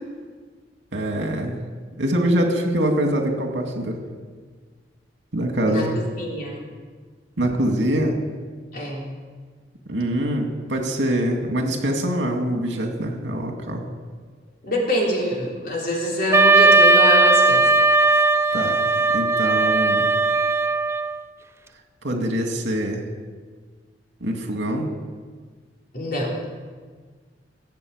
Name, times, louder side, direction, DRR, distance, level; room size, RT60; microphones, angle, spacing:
voice 1, 0.9-1.6 2.0-4.0 5.3-6.0 7.4-8.2 9.9-13.9 18.5-18.8 19.1-20.1 22.0-23.0 24.2-24.9, right 1 dB, 80° right, 3 dB, 2.4 m, -24 dB
voice 2, 5.7-6.7 8.7-9.1 14.6-17.7 25.9-26.4, equal, 55° left, -2 dB, 3.8 m, -25 dB
Wind instrument woodwind instrument, 16.3-21.2, right 3 dB, 15° right, 0.4 m, -17 dB
16.5 x 8.0 x 8.1 m, 1.5 s
head